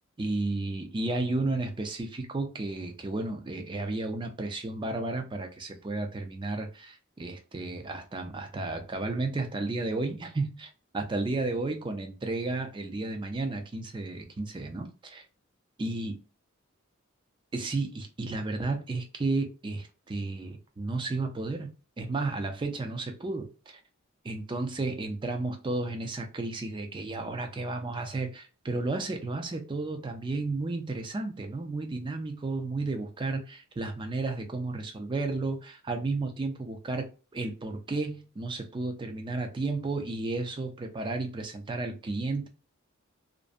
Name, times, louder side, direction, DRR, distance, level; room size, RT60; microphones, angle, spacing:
voice 1, 0.2-15.2 15.8-16.2 17.5-23.8 24.2-37.1 37.3-42.5, right 2 dB, 25° right, 0.4 m, -33 dB
2.5 x 2.1 x 2.4 m
head